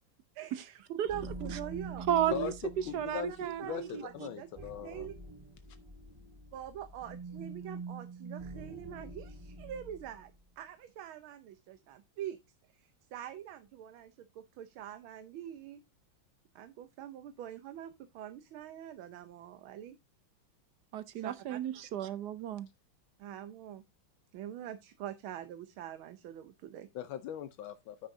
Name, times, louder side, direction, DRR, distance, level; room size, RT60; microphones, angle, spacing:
voice 1, 0.3-2.1 2.4-2.5 3.3-5.2 6.5-12.4 12.7-15.8 16.5-20.0 21.1-21.6 23.2-23.8 24.3-26.9, right 11 dB, 85° right, 1.6 m, -45 dB
sound 1, 1.1-10.3, right 3 dB, 20° right, 0.7 m, -46 dB
voice 2, 2.1-2.5 2.9-4.0 20.9-22.7, right 10 dB, 70° right, 1.0 m, -33 dB
voice 3, 2.9-3.3 3.6-5.1 26.9-28.1, left 10 dB, 80° left, 1.5 m, -40 dB
9.5 x 9.4 x 2.7 m
omnidirectional pair, 2.2 m